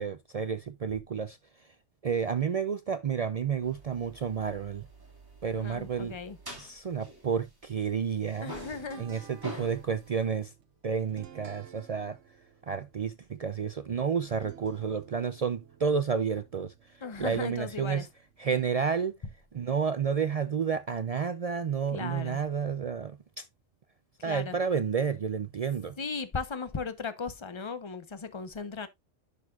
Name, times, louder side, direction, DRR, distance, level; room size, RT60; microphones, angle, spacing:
voice 1, 0.0-1.4 2.0-4.9 5.4-6.2 6.6-8.5 9.0-10.5 10.8-12.2 12.6-16.7 17.2-18.1 18.4-19.1 19.5-23.5 24.2-26.0, right 6 dB, 60° right, 0.4 m, -30 dB
sound 1, 3.6-7.9 8.1-10.2, right 1 dB, 20° right, 2.0 m, -47 dB
voice 2, 5.5-6.4 8.4-9.1 9.5-9.7 17.0-18.0 21.9-22.4 24.2-24.6 26.0-28.9, left 5 dB, 25° left, 0.8 m, -37 dB
sound 2, 8.7-19.3, right 8 dB, 90° right, 1.2 m, -55 dB
10.5 x 6.3 x 2.4 m
omnidirectional pair, 1.2 m